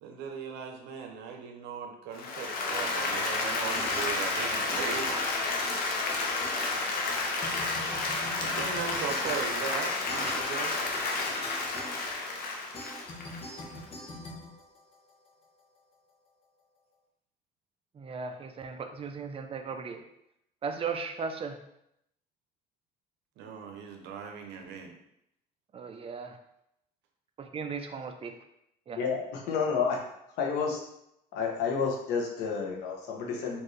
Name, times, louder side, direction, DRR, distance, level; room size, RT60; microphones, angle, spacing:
voice 1, 0.0-5.2 8.4-11.0 23.4-24.9, right 6 dB, 90° right, 4 dB, 0.7 m, -38 dB
Applause, 2.1-13.8, left 3 dB, 65° left, 0.8 m, -31 dB
sound 1, 3.7-4.5 4.7-7.1 7.4-15.3, left 1 dB, 35° left, 0.8 m, -44 dB
voice 2, 18.0-20.0 20.6-21.6 25.7-26.4 27.4-28.3 28.9-29.0, right 5 dB, 35° right, 6 dB, 0.5 m, -36 dB
voice 3, 29.0-30.0 30.4-30.8 31.3-33.6, left 5 dB, 90° left, 0 dB, 0.9 m, -30 dB
4.4 x 2.6 x 3.1 m, 0.78 s
cardioid pair, 110°, 17 cm